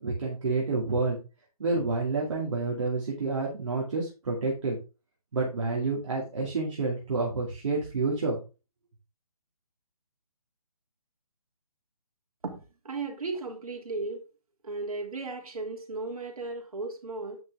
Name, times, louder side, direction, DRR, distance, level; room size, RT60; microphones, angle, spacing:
voice 1, 0.0-1.2 1.6-4.8 5.3-8.4, right 3 dB, 50° right, -2 dB, 2.6 m, -29 dB
voice 2, 12.4-14.2 14.6-17.4, right 3 dB, 70° right, 2 dB, 3.1 m, -35 dB
9.1 x 6.2 x 3.7 m, 0.31 s
hypercardioid pair, 170°, 19 cm